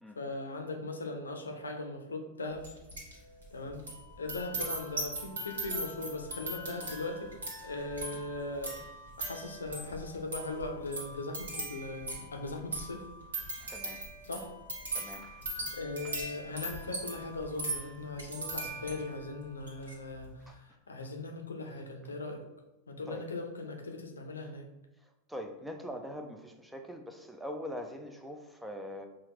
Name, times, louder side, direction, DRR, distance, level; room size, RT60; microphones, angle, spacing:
voice 1, 0.2-2.7 3.5-3.9 4.2-7.3 7.6-8.7 9.2-13.1 14.2-14.5 15.7-22.4 22.9-24.7, left 2 dB, 75° left, 3 dB, 0.5 m, -39 dB
sound 1, 2.6-3.2 3.4-19.2 19.6-19.9, right 2 dB, 70° right, 1.3 m, -40 dB
voice 2, 13.6-14.0 14.9-15.4 20.5-20.6 23.1-23.3 25.3-29.1, equal, 5° right, 4 dB, 0.4 m, -42 dB
5.7 x 2.3 x 3.1 m, 0.95 s
figure-of-eight pair, 90°, 0 cm